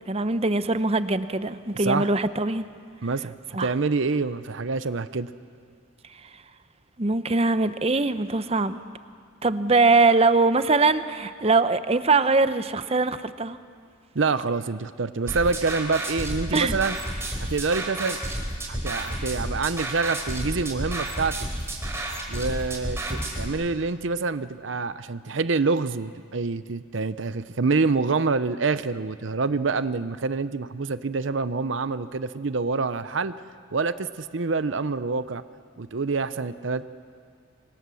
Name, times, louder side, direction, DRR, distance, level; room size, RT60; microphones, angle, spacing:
voice 1, 0.1-2.7 3.5-3.7 7.0-8.8 9.4-13.6 16.5-16.8, right 3 dB, 30° right, 12 dB, 0.7 m, -22 dB
voice 2, 3.0-5.3 14.1-17.0 17.5-18.2 18.7-21.3 22.3-33.3 33.7-35.4 35.8-36.9, right 4 dB, 65° right, 13 dB, 0.7 m, -26 dB
sound 1, 15.3-23.5, right 1 dB, 15° right, 3.4 m, -31 dB
27.0 x 23.5 x 7.0 m, 2.1 s
head